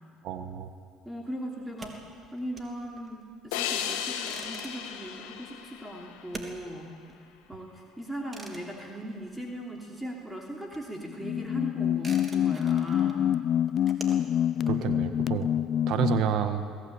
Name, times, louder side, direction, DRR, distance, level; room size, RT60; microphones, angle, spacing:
voice 1, 0.2-0.7 14.6-15.5 15.9-16.6, right 9 dB, 65° right, 8 dB, 1.5 m, -29 dB
voice 2, 1.0-2.0 2.3-13.4, right 1 dB, 10° right, -1 dB, 3.1 m, -39 dB
sound 1, 1.6-10.0 10.2-16.0, right 3 dB, 30° right, 3.2 m, -48 dB
sound 2, 3.5-6.8, left 9 dB, 85° left, 1.8 m, -35 dB
sound 3, 11.1-16.4, left 10 dB, 55° left, 0.5 m, -26 dB
22.0 x 17.0 x 8.9 m, 2.3 s
supercardioid pair, 80°, 0 cm